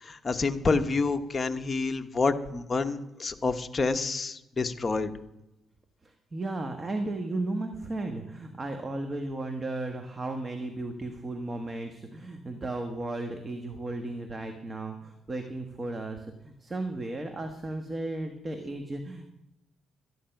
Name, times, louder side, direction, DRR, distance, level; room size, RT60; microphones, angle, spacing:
voice 1, 0.0-5.1, left 4 dB, 30° left, 7 dB, 1.0 m, -28 dB
voice 2, 6.0-19.3, right 2 dB, 30° right, 5 dB, 1.3 m, -35 dB
13.0 x 10.0 x 5.8 m, 0.92 s
cardioid pair, 90°, 0 cm